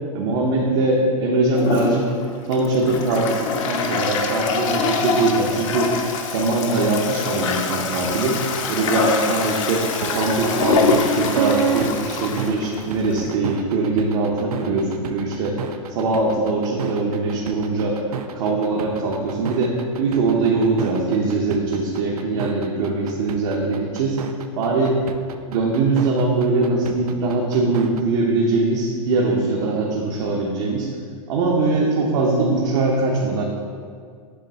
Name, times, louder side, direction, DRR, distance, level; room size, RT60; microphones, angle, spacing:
voice 1, 0.1-2.1 2.5-5.9 6.3-8.4 8.7-15.6 15.9-18.0 18.3-24.2 24.6-25.0 25.5-30.9 31.3-33.4, right 3 dB, 55° right, -2 dB, 0.8 m, -21 dB
Toilet flush, 1.5-13.3, left 5 dB, 60° left, 0.7 m, -25 dB
sound 1, 9.3-28.0, right 7 dB, 90° right, 0.5 m, -30 dB
8.1 x 3.3 x 4.1 m, 2.1 s
hypercardioid pair, 135°, 19 cm